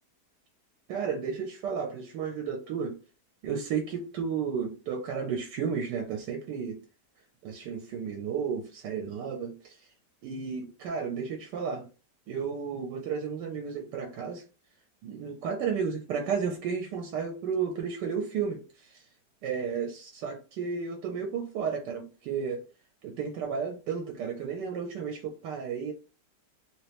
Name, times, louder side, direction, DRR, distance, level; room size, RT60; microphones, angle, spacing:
voice 1, 0.9-3.0 3.4-6.8 7.4-9.9 10.2-11.9 12.3-14.4 15.0-19.0 19.4-22.6 23.0-25.9, right 6 dB, 90° right, 1.3 m, -33 dB
3.0 x 2.9 x 3.3 m
omnidirectional pair, 1.8 m